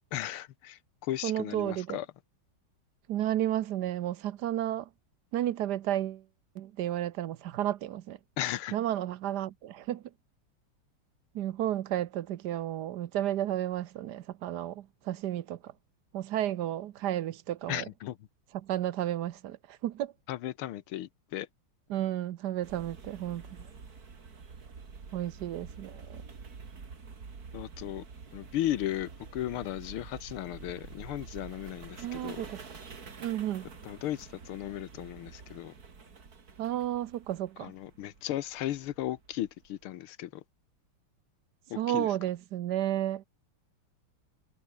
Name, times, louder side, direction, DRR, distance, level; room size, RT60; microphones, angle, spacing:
voice 1, 0.1-2.1 8.4-8.8 17.7-18.2 20.3-21.5 27.5-28.1 28.3-32.4 33.8-35.7 37.6-40.4 41.7-42.2, left 13 dB, 85° left, 1.8 m, -36 dB
voice 2, 1.2-2.0 3.1-4.9 5.3-6.2 6.6-8.2 8.7-10.0 11.3-15.7 16.1-17.8 18.6-20.1 21.9-23.6 25.1-26.2 32.0-32.6 33.2-33.7 36.6-37.7 41.8-43.3, right 12 dB, 65° right, 1.1 m, -32 dB
sound 1, 22.6-39.8, right 5 dB, 45° right, 2.8 m, -48 dB
omnidirectional pair, 2.3 m